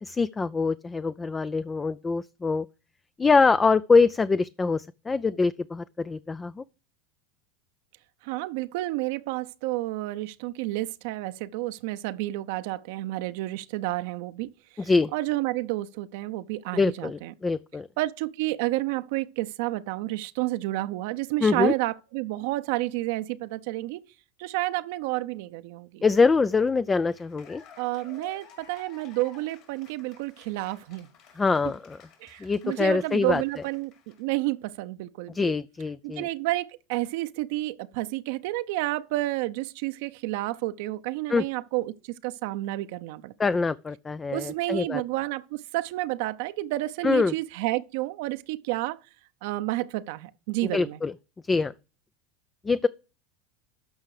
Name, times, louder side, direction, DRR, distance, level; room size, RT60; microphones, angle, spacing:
voice 1, 0.0-2.7 3.2-6.6 14.8-15.1 16.7-17.9 21.4-21.7 26.0-27.6 31.4-32.0 32.4-33.4 35.3-36.3 41.3-41.4 43.4-45.0 47.0-47.3 50.6-51.1 51.5-51.7 52.6-52.9, left 4 dB, 20° left, 0.4 m, -24 dB
voice 2, 8.2-14.5 14.8-17.3 18.0-24.0 24.4-26.0 27.8-31.1 32.2-33.9 34.2-35.5 36.0-43.3 44.3-49.0 49.4-51.0, right 18 dB, 65° right, 0.6 m, -30 dB
Cheering / Applause, 26.9-34.4, left 7 dB, 55° left, 5.2 m, -54 dB
12.5 x 5.6 x 4.8 m
hypercardioid pair, 90°, 0 cm